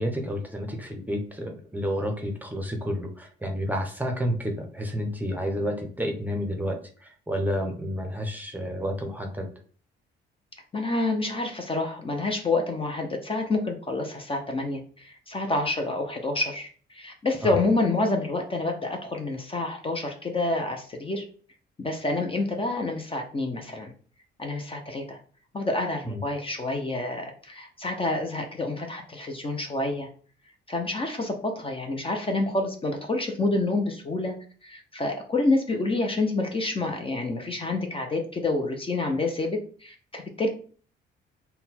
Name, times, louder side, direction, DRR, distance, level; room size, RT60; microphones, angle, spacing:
voice 1, 0.0-9.5 17.4-17.5 26.0-26.2, equal, 10° right, 3 dB, 0.8 m, -30 dB
voice 2, 10.7-21.2 21.8-23.9 24.4-25.2 25.5-30.1 30.7-34.3 34.6-40.5, left 2 dB, 25° left, 3 dB, 0.7 m, -28 dB
3.9 x 2.2 x 4.2 m, 0.43 s
cardioid pair, 90°, 20 cm